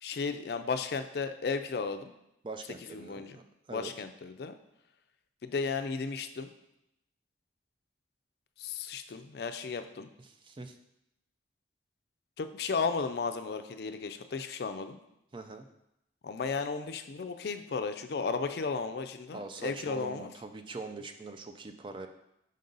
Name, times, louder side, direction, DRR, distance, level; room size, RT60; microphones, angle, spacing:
voice 1, 0.0-2.1 2.9-3.4 3.7-4.6 5.4-6.5 8.6-10.1 12.4-15.0 16.2-20.3, left 4 dB, 60° left, 9 dB, 0.4 m, -34 dB
voice 2, 2.4-3.4 3.7-3.9 10.4-10.8 15.3-15.7 19.3-22.1, right 3 dB, 25° right, 7 dB, 0.4 m, -42 dB
5.4 x 5.3 x 3.9 m, 0.83 s
head